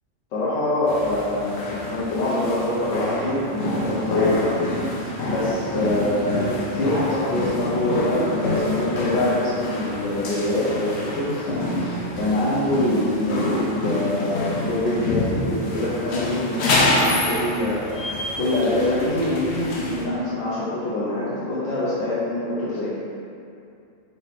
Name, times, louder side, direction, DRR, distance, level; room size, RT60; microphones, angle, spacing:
voice 1, 0.3-23.0, left 1 dB, 90° left, -9 dB, 1.1 m, -25 dB
sound 1, 0.9-20.0, left 1 dB, 65° left, 0.8 m, -27 dB
4.0 x 2.7 x 3.2 m, 2.5 s
omnidirectional pair, 1.3 m